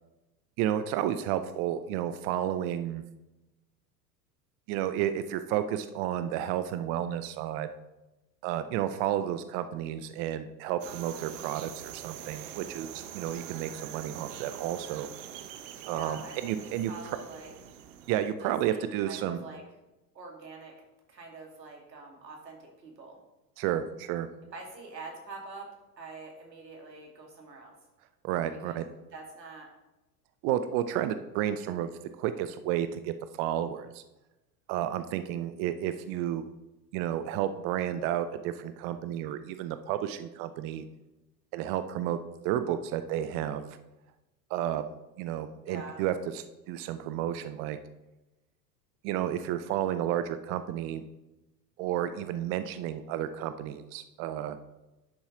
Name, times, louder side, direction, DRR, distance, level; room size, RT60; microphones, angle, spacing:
voice 1, 0.6-3.0 4.7-7.7 8.4-15.1 15.9-16.9 18.1-19.4 23.6-24.3 28.2-28.9 30.4-31.9 32.2-34.0 34.7-36.4 36.9-40.8 41.5-42.2 42.4-43.8 44.5-44.8 45.2-47.8 49.0-51.0 51.8-54.6, right 11 dB, 30° right, 11 dB, 0.4 m, -31 dB
sound 1, 10.8-18.3, right 10 dB, 45° right, 1.0 m, -44 dB
voice 2, 15.9-17.5 18.4-19.6 20.1-20.7 21.1-23.2 24.5-25.7 26.0-27.8 28.5-28.8 29.1-29.7 45.7-46.0, right 3 dB, 80° right, 1 dB, 2.4 m, -45 dB
11.0 x 7.1 x 3.8 m, 1.0 s
figure-of-eight pair, 80°, 50 cm